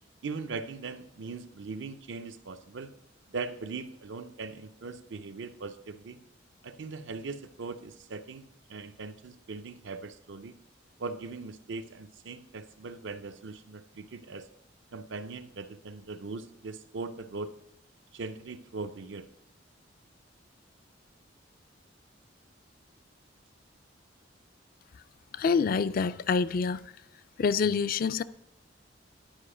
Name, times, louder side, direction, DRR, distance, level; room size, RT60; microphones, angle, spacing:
voice 1, 0.2-2.9 3.3-6.2 6.6-10.6 11.0-14.5 14.9-17.5 18.1-19.3, right 4 dB, 70° right, 0.6 m, -40 dB
voice 2, 25.4-26.8 27.4-28.2, left 5 dB, 50° left, 0.3 m, -26 dB
10.5 x 4.9 x 5.0 m
head